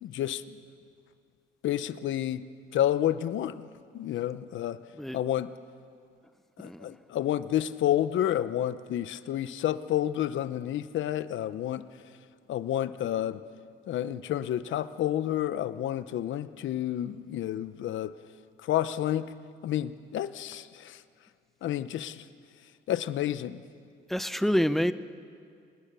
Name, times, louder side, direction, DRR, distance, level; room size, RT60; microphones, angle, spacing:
voice 1, 0.0-0.6 1.6-2.4 2.7-3.7 3.9-4.8 5.1-5.5 6.6-11.8 12.5-13.4 13.9-18.2 18.6-19.3 19.6-21.0 21.6-22.2 22.9-23.6, left 12 dB, 75° left, 14 dB, 0.9 m, -30 dB
voice 2, 6.6-7.0 24.1-24.9, equal, ahead, 13 dB, 0.8 m, -27 dB
26.0 x 20.0 x 6.9 m, 2.3 s
cardioid pair, 90°, 20 cm